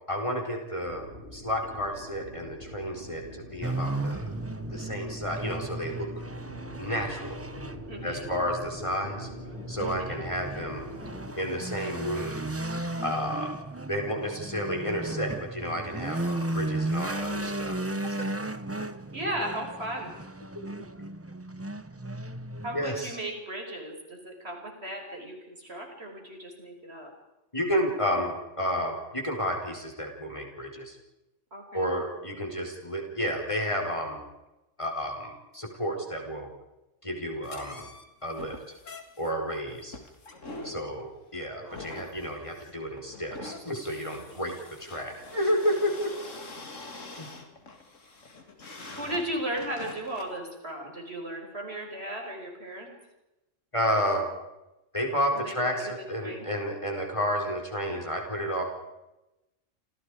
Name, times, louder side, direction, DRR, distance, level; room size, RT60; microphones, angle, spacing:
voice 1, 0.1-1.1 1.3-4.2 4.7-6.1 6.8-7.4 8.0-9.3 9.7-10.9 11.4-12.4 13.0-13.5 13.9-18.2 20.5-21.1 22.7-23.2 27.5-31.0 31.7-34.2 34.8-36.5 37.0-37.8 38.2-38.6 39.2-40.0 40.6-44.5 44.8-46.1 47.2-47.3 53.7-54.3 54.9-58.6, equal, 25° left, 2 dB, 4.7 m, -31 dB
sound 1, 0.8-11.3, left 1 dB, 55° left, 5.6 m, -44 dB
sound 2, 3.6-22.9, right 2 dB, 15° right, 0.8 m, -35 dB
voice 2, 7.9-8.3 9.8-10.3 19.1-20.1 22.6-27.1 31.5-31.8 41.6-41.8 44.1-44.5 49.0-52.9 55.3-55.9 56.2-56.5, right 1 dB, 55° right, 2 dB, 5.7 m, -36 dB
sound 3, 37.4-50.4, left 2 dB, 85° left, 2.8 m, -45 dB
29.0 x 28.5 x 5.0 m, 0.98 s
omnidirectional pair, 1.3 m